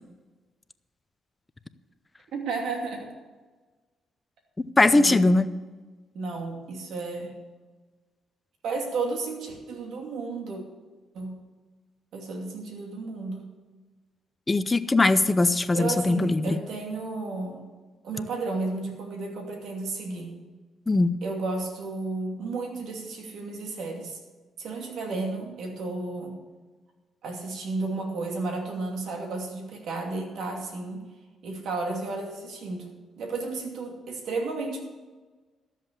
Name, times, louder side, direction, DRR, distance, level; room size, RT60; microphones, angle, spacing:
voice 1, 2.3-3.1 4.9-5.2 6.1-7.3 8.6-10.6 11.1-11.3 12.1-13.4 15.7-17.6 18.0-20.4 21.2-24.2 24.6-26.4 27.2-31.0 31.4-34.8, right 3 dB, 75° right, 2 dB, 2.7 m, -33 dB
voice 2, 4.6-5.5 14.5-16.6 20.9-21.1, left 2 dB, 20° left, 13 dB, 0.6 m, -21 dB
13.5 x 7.5 x 8.1 m, 1.3 s
cardioid pair, 90°, 0 cm